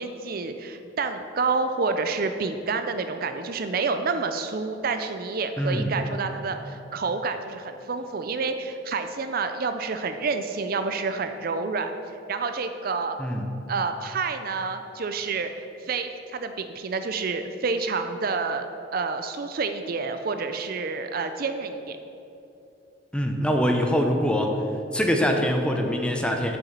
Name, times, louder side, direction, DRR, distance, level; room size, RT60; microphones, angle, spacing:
voice 1, 0.0-11.9 12.3-13.2 13.7-15.5 15.8-18.7 18.9-22.0, right 4 dB, 50° right, 8 dB, 0.4 m, -28 dB
voice 2, 5.6-5.9 13.2-13.5 23.1-24.6 24.9-26.6, equal, 5° left, 3 dB, 0.7 m, -23 dB
6.9 x 6.9 x 7.3 m, 2.8 s
head